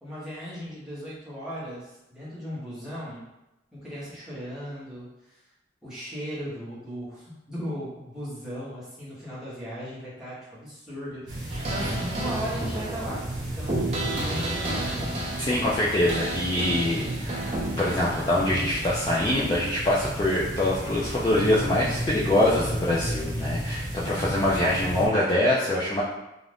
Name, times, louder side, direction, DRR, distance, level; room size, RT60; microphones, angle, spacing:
voice 1, 0.0-3.2 3.7-5.4 5.8-13.2 13.6-15.1 24.0-24.3, equal, 5° right, -10 dB, 0.9 m, -37 dB
sound 1, 11.3-25.1, right 1 dB, 85° right, 0.8 m, -33 dB
sound 2, 11.5-18.0, right 1 dB, 35° right, 0.5 m, -32 dB
voice 2, 15.4-26.0, left 1 dB, 20° left, -7 dB, 0.3 m, -24 dB
2.5 x 2.4 x 3.3 m, 0.93 s
head